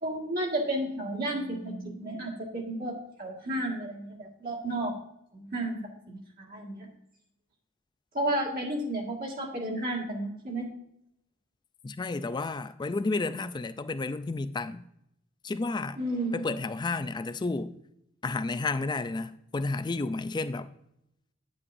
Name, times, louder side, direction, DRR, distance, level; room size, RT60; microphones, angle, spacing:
voice 1, 0.0-4.9 5.3-5.8 6.1-6.9 8.1-10.7 16.0-16.4, right 1 dB, 45° right, 1.8 m, -32 dB
voice 2, 11.8-14.8 15.4-16.0 16.3-17.7 18.2-20.7, left 3 dB, 20° left, 0.3 m, -31 dB
9.4 x 8.6 x 2.6 m
head